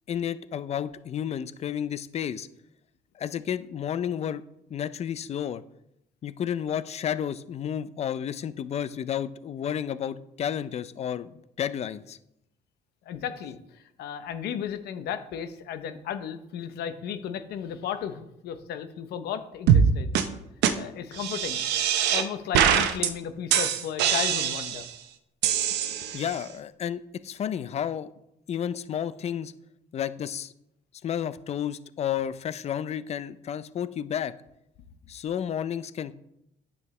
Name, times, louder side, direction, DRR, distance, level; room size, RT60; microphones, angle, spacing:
voice 1, 0.1-2.5 3.1-4.4 4.7-5.6 6.2-12.2 26.1-28.1 28.5-29.5 29.9-30.5 31.0-34.3 35.1-36.1, left 9 dB, 40° left, 15 dB, 0.5 m, -31 dB
voice 2, 13.0-20.1 20.8-21.6 22.1-24.8 25.8-26.0, left 8 dB, 75° left, 10 dB, 0.8 m, -34 dB
sound 1, 19.7-19.9 20.2-20.3 20.6-20.7 21.2-22.3 22.5-23.1 23.5-24.9 25.4-26.4, right 9 dB, 85° right, 0.8 m, -23 dB
9.6 x 7.1 x 3.2 m, 0.83 s
cardioid pair, 110°, 17 cm